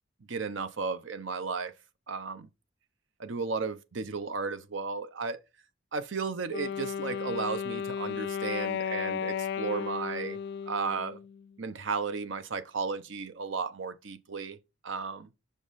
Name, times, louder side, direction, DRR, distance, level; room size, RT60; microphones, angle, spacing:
voice 1, 0.3-1.7 2.1-2.5 3.2-5.4 5.9-10.4 10.7-11.2 11.6-14.6 14.8-15.3, right 4 dB, 75° right, 0.7 m, -34 dB
Wind instrument woodwind instrument, 6.5-11.5, left 7 dB, 55° left, 0.3 m, -34 dB
6.4 x 5.3 x 4.0 m
head